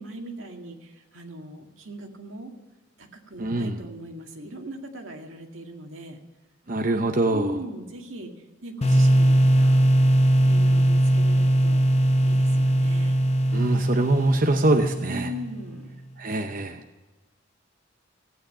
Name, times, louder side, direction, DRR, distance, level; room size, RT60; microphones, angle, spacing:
voice 1, 0.0-2.5 3.0-6.2 7.3-8.3 8.6-11.8 12.2-13.2 15.1-15.9, equal, 80° right, 3 dB, 2.0 m, -39 dB
voice 2, 3.4-3.7 6.7-7.5 13.5-15.3 16.2-16.8, right 2 dB, 40° right, 5 dB, 0.7 m, -24 dB
sound 1, 8.8-15.6, right 1 dB, 30° left, 0.8 m, -20 dB
15.5 x 9.4 x 6.8 m, 1.2 s
head